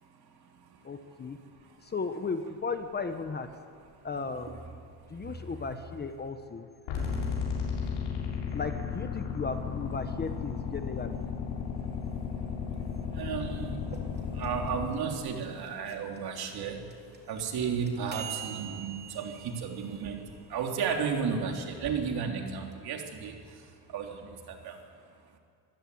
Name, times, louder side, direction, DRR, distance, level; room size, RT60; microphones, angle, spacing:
voice 1, 0.0-1.9 4.1-4.6 5.1-5.7 11.8-24.8, right 6 dB, 55° right, 2 dB, 3.6 m, -35 dB
voice 2, 0.8-1.4 1.8-3.5 4.0-4.6 5.1-6.7 8.5-11.2, left 4 dB, 20° left, 8 dB, 1.2 m, -35 dB
sound 1, 6.9-14.9, left 6 dB, 80° left, 6.8 m, -34 dB
sound 2, 13.8-21.9, right 7 dB, 20° right, 3.2 m, -46 dB
25.5 x 16.0 x 9.6 m, 2.2 s
cardioid pair, 145°, 44 cm